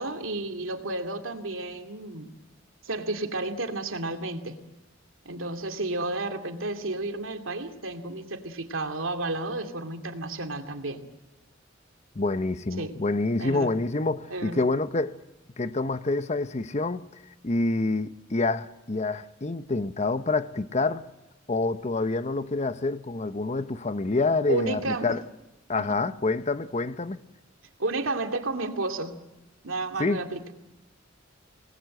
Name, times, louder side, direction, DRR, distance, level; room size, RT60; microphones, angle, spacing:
voice 1, 0.0-2.3 2.8-4.6 5.2-11.0 12.8-12.9 13.4-13.7 14.3-14.6 24.5-25.1 25.7-26.0 27.8-29.1 29.6-30.5, right 2 dB, 85° right, 2.5 m, -32 dB
voice 2, 12.2-15.2 15.6-17.0 17.4-21.0 21.5-25.2 25.7-27.2 30.0-30.2, left 3 dB, 35° left, 0.8 m, -27 dB
27.5 x 20.0 x 7.7 m
head